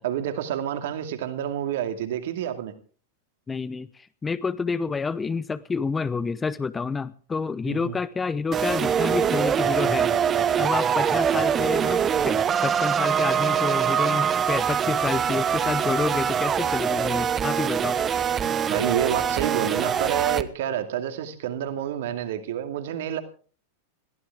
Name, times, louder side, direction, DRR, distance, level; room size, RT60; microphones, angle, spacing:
voice 1, 0.0-2.7 7.6-8.0 18.7-23.2, right 10 dB, 55° right, 8 dB, 2.3 m, -28 dB
voice 2, 3.5-10.1 10.6-18.0, left 4 dB, 15° left, 17 dB, 0.6 m, -29 dB
sound 1, 8.5-20.4, right 8 dB, 25° right, 1.0 m, -23 dB
22.0 x 15.5 x 3.5 m, 0.40 s
figure-of-eight pair, 90°, 0 cm